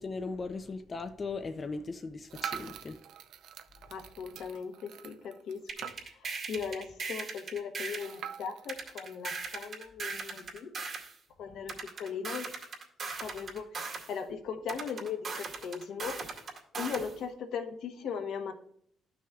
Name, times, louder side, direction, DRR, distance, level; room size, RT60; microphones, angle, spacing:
voice 1, 0.0-3.0, left 4 dB, 35° left, 0.5 m, -38 dB
sound 1, 2.3-6.3 6.7-6.8 7.0-7.1 8.0-9.7, right 9 dB, 85° right, 0.5 m, -44 dB
voice 2, 3.9-10.7 11.4-12.5 13.1-16.2 16.8-18.5, left 6 dB, 75° left, 1.1 m, -38 dB
sound 2, 5.7-8.2 8.7-11.1 11.7-14.1 14.7-17.1, right 4 dB, 50° right, 2.3 m, -38 dB
12.0 x 6.1 x 2.3 m
cardioid pair, 90°, 0 cm